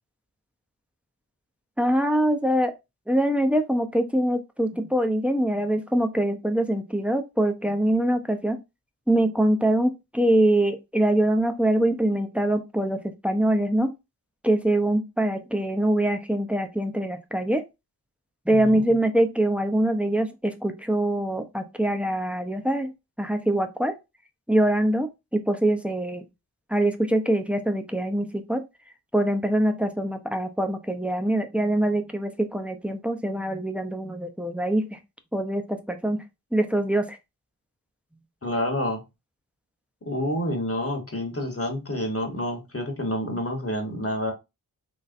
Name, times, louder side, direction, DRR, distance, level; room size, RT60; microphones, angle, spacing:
voice 1, 1.8-2.7 3.1-8.6 9.1-13.9 14.4-17.6 18.5-22.9 23.2-23.9 24.5-26.2 26.7-28.6 29.1-35.0 35.3-36.2 36.5-37.2, right 1 dB, 5° right, 0.7 m, -24 dB
voice 2, 38.4-39.0 40.0-44.3, left 1 dB, 35° left, 1.2 m, -28 dB
4.0 x 3.1 x 2.5 m
cardioid pair, 45°, 39 cm